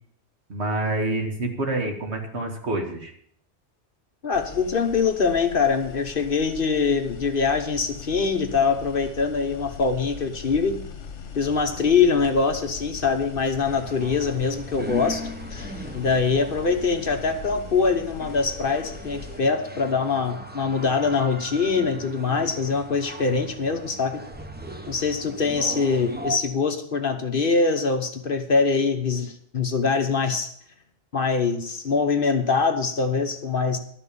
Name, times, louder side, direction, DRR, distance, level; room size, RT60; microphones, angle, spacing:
voice 1, 0.5-3.1, right 2 dB, 65° right, 2 dB, 2.2 m, -27 dB
voice 2, 4.2-10.8 11.4-24.2 24.9-30.5 31.1-33.8, left 5 dB, 50° left, 6 dB, 1.2 m, -23 dB
sound 1, 4.3-19.4, left 6 dB, 80° left, 1.4 m, -40 dB
sound 2, 13.6-26.4, equal, 10° right, 0.7 m, -38 dB
12.0 x 6.0 x 8.4 m, 0.65 s
omnidirectional pair, 1.2 m